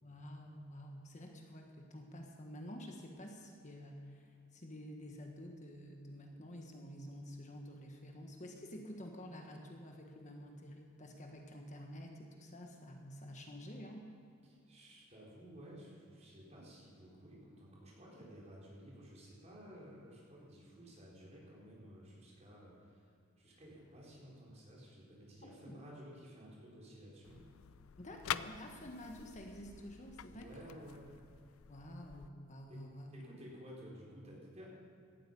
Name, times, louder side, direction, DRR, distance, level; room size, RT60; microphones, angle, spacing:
voice 1, 0.0-14.0 25.4-25.8 28.0-30.5 31.7-33.1, equal, 35° left, 2 dB, 1.5 m, -50 dB
voice 2, 14.4-27.4 30.3-31.1 32.7-34.7, equal, 35° right, -4 dB, 4.3 m, -54 dB
sound 1, 27.2-32.3, left 9 dB, 90° left, 0.4 m, -46 dB
17.0 x 13.0 x 5.4 m, 2.3 s
head